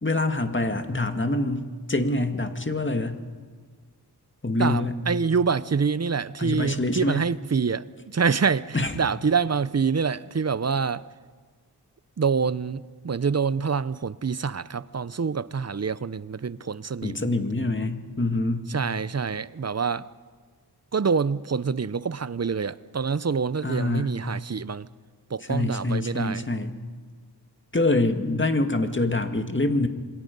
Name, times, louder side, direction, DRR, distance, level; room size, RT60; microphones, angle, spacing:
voice 1, 0.0-3.2 4.4-4.9 6.4-7.2 8.7-8.9 17.0-18.7 23.6-24.1 25.5-26.8 27.7-29.9, left 2 dB, 30° left, 2.0 m, -25 dB
voice 2, 4.6-7.8 8.1-11.0 12.2-17.3 18.7-20.0 20.9-24.9 25.3-26.5, right 5 dB, 40° right, 0.6 m, -26 dB
27.0 x 22.0 x 5.4 m
wide cardioid pair, 60°, 41 cm